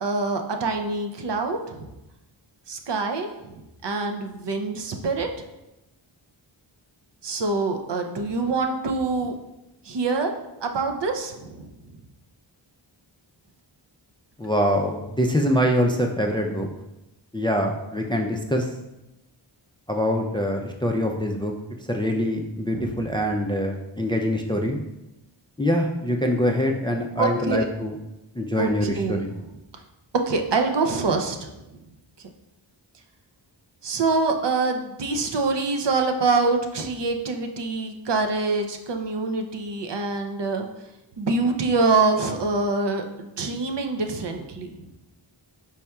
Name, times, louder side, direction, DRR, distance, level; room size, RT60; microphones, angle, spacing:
voice 1, 0.0-1.9 2.7-3.3 3.8-5.3 7.2-9.3 9.9-10.3 10.6-11.7 22.7-23.1 27.2-27.7 28.6-29.2 30.3-31.5 33.8-40.7 41.2-44.7, right 3 dB, 60° right, 4 dB, 0.6 m, -25 dB
voice 2, 14.4-16.7 17.3-18.7 19.9-21.5 21.9-24.8 25.6-27.9 28.4-29.3, equal, 10° left, 2 dB, 0.4 m, -24 dB
4.9 x 4.1 x 2.3 m, 0.93 s
cardioid pair, 50°, 48 cm